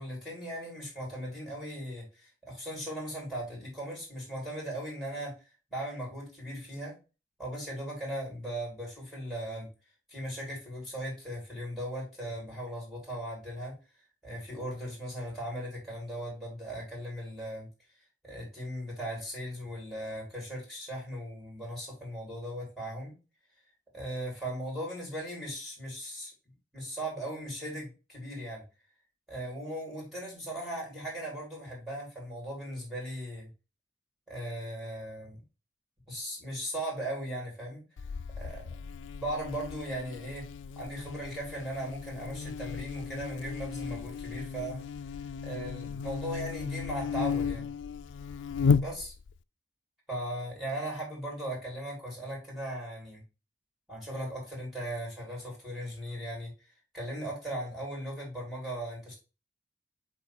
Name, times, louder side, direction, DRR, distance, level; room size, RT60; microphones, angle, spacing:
voice 1, 0.0-6.9 7.4-9.7 10.1-13.7 14.2-17.7 18.2-23.1 23.9-26.3 26.7-28.6 29.3-33.5 34.3-35.4 36.1-37.8 38.4-38.7 39.2-40.4 40.8-44.8 45.4-47.7 48.8-49.1 50.1-53.2 53.9-56.5 56.9-59.2, right 1 dB, ahead, -3 dB, 3.5 m, -38 dB
Buzz, 38.0-49.4, left 6 dB, 85° left, 0.4 m, -34 dB
7.8 x 3.1 x 4.4 m, 0.31 s
head